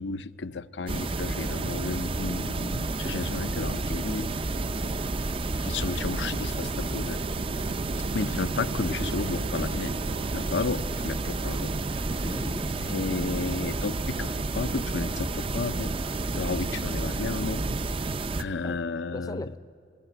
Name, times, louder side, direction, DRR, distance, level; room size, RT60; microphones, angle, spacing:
voice 1, 0.0-4.3 5.6-7.2 8.1-9.9 10.3-11.7 12.9-14.3 14.5-15.9 16.3-17.6 18.4-19.5, left 4 dB, 85° left, 13 dB, 0.7 m, -32 dB
sound 1, 0.9-18.4, right 2 dB, 30° right, 0.5 m, -30 dB
Car passing by, 3.0-15.4 15.8-18.3, right 4 dB, 90° right, 0.6 m, -45 dB
voice 2, 12.2-12.7 18.3-18.8 19.1-19.6, left 1 dB, 20° left, 12 dB, 0.6 m, -38 dB
29.5 x 16.0 x 10.0 m, 2.7 s
head